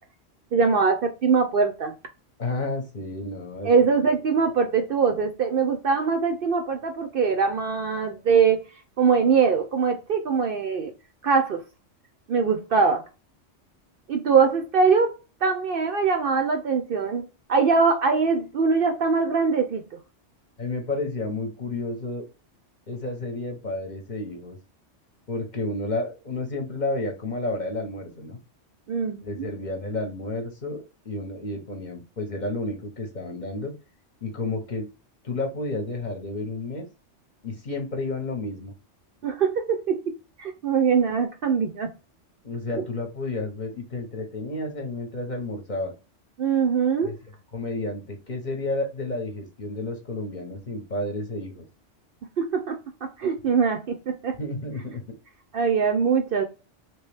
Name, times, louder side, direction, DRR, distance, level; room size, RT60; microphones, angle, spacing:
voice 1, 0.5-1.9 3.6-8.6 9.0-10.9 11.2-11.6 12.3-13.0 14.1-15.1 15.4-19.8 28.9-29.5 39.2-40.1 40.4-41.9 42.7-42.8 46.4-47.2 52.4-54.4 55.5-56.4, right 5 dB, 60° right, 0.7 m, -22 dB
voice 2, 2.4-3.7 20.6-22.3 22.9-24.6 25.3-28.4 29.2-33.7 34.2-34.9 35.2-36.9 37.4-38.7 42.4-45.9 47.0-47.1 47.5-51.6 54.4-55.0, left 2 dB, 40° left, 0.9 m, -31 dB
3.0 x 2.9 x 3.2 m
omnidirectional pair, 1.2 m